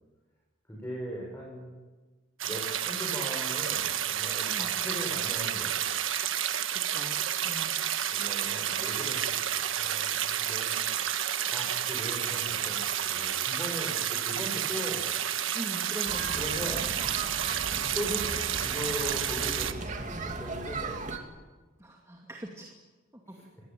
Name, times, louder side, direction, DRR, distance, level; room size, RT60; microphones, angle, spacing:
voice 1, 0.7-1.7 2.4-6.0 8.1-9.2 9.5-11.0 11.5-12.8 13.1-15.1 16.4-16.8 17.9-18.3 18.6-21.0 23.3-23.4, equal, 10° left, -3 dB, 6.9 m, -39 dB
sound 1, 2.4-19.7, right 10 dB, 70° right, 1.4 m, -30 dB
voice 2, 6.7-7.8 15.5-16.3 21.8-22.7 23.1-23.4, right 1 dB, 15° right, 0 dB, 2.4 m, -42 dB
sound 2, 16.0-21.2, right 3 dB, 35° right, 2.6 m, -37 dB
25.5 x 20.0 x 9.3 m, 1.3 s
head